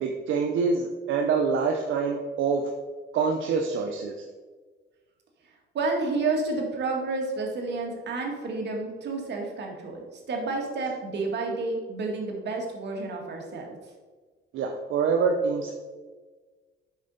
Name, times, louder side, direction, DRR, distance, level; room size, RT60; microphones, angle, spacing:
voice 1, 0.0-2.6 3.1-4.1 14.5-15.7, right 5 dB, 80° right, 3 dB, 0.7 m, -25 dB
voice 2, 5.7-10.0 10.3-13.8, right 3 dB, 60° right, 1 dB, 1.7 m, -30 dB
7.2 x 5.2 x 4.0 m, 1.4 s
cardioid pair, 90°, 20 cm